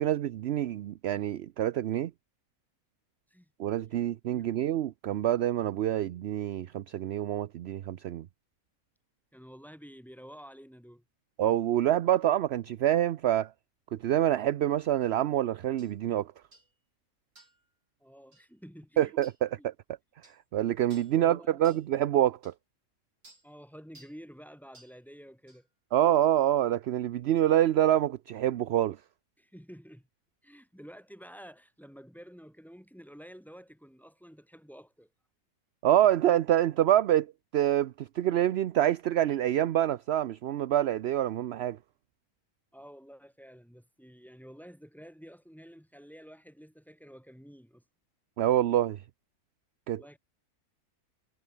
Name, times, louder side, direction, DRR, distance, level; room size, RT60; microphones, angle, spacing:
voice 1, 0.0-2.1 3.6-8.3 11.4-13.5 14.0-16.3 19.0-19.3 19.6-19.7 20.5-22.5 25.9-29.0 35.8-41.8 48.4-49.0 49.9-50.2, right 12 dB, 60° right, 0.7 m, -26 dB
voice 2, 9.3-11.0 18.0-19.1 19.6-19.7 21.0-21.8 23.4-25.7 29.4-30.1 30.4-35.1 42.7-47.8 49.9-50.2, equal, ahead, 3.1 m, -50 dB
sound 1, 15.8-15.9 16.5-16.7 17.4-17.6 18.3-18.5 19.2-19.4 20.2-20.4 20.9-21.2 21.6-21.9 22.4-22.5 23.2-23.5 23.9-24.2 24.7-25.0 25.5-25.6, right 2 dB, 80° right, 7.5 m, -57 dB
omnidirectional pair, 1.5 m